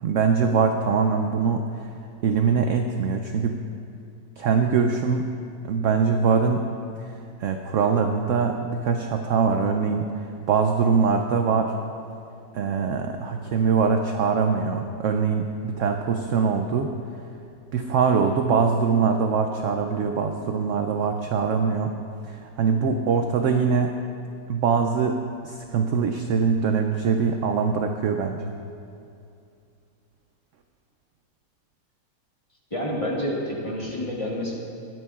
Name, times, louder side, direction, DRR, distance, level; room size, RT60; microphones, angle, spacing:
voice 1, 0.0-1.7 2.2-3.6 4.4-5.3 5.6-6.7 7.4-10.1 10.5-11.7 12.5-16.9 17.7-21.9 22.3-23.9 24.5-28.5, right 5 dB, 75° right, 5 dB, 0.7 m, -23 dB
voice 2, 32.7-34.6, equal, 20° left, -3 dB, 1.2 m, -28 dB
19.0 x 9.2 x 2.4 m, 2.5 s
omnidirectional pair, 1.9 m